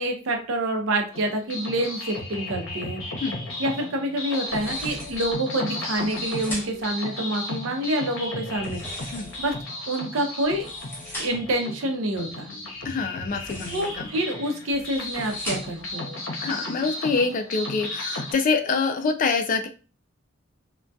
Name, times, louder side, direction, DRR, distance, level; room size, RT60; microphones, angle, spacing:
voice 1, 0.0-3.0 3.6-8.8 9.4-9.5 9.9-10.7 11.2-12.5 13.7-16.0, right 1 dB, 75° right, 3 dB, 0.6 m, -27 dB
sound 1, 1.1-18.3, left 1 dB, 70° left, 0.7 m, -34 dB
sound 2, 4.5-5.4 5.9-6.9 8.5-9.6 10.4-11.5 13.2-14.1 14.7-15.9, equal, 10° left, 0.9 m, -39 dB
voice 2, 12.8-14.1 16.4-19.7, left 4 dB, 40° left, 6 dB, 0.3 m, -25 dB
2.6 x 2.2 x 2.2 m, 0.35 s
head